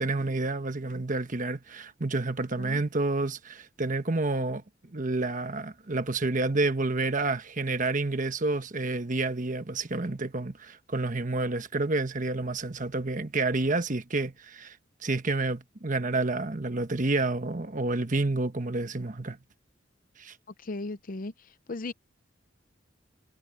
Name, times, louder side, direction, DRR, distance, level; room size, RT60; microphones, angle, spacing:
voice 1, 0.0-4.6 4.9-14.8 15.0-19.4 20.2-20.3, right 2 dB, 40° right, 1.2 m, -29 dB
voice 2, 20.6-21.3 21.7-21.9, left 2 dB, 45° left, 0.7 m, -36 dB
head